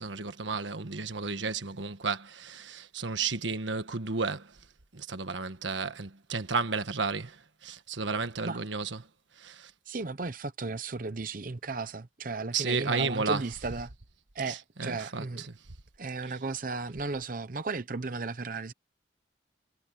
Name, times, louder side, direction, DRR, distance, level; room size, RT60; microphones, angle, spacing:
voice 1, 0.0-4.5 4.9-9.0 9.4-9.7 12.5-13.4 14.5-15.2, right 4 dB, 90° right, 1.4 m, -32 dB
voice 2, 9.9-13.9 14.3-15.5 16.0-18.7, right 3 dB, 50° right, 0.8 m, -35 dB
head